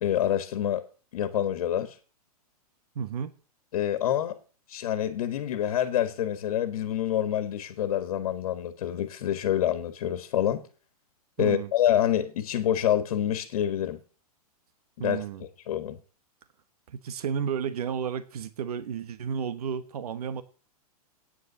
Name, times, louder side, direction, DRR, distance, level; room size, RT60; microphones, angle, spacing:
voice 1, 0.0-0.8 1.1-2.0 3.7-4.3 4.7-10.7 11.4-14.0 15.0-15.2 15.7-16.0, left 11 dB, 65° left, 10 dB, 1.6 m, -27 dB
voice 2, 2.9-3.3 11.4-11.7 15.0-15.5 16.9-20.4, right 7 dB, 75° right, 13 dB, 1.1 m, -32 dB
9.5 x 6.9 x 7.4 m, 0.36 s
hypercardioid pair, 140°, 20 cm